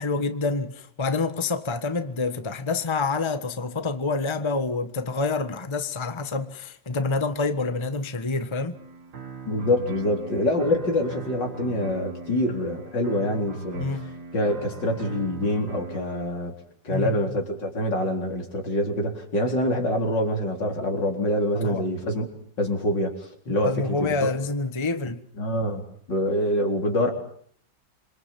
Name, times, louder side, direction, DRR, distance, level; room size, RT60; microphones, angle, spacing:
voice 1, 0.0-8.7 13.8-14.1 16.9-17.4 21.6-21.8 23.5-25.2, left 3 dB, 15° left, 1.2 m, -27 dB
sound 1, 8.7-16.3, right 3 dB, 60° right, 2.5 m, -39 dB
voice 2, 9.5-13.9 14.3-16.5 16.8-22.2 22.6-24.3 25.4-25.8 26.1-27.1, left 1 dB, 70° left, 4.9 m, -25 dB
27.0 x 23.5 x 7.5 m
omnidirectional pair, 2.0 m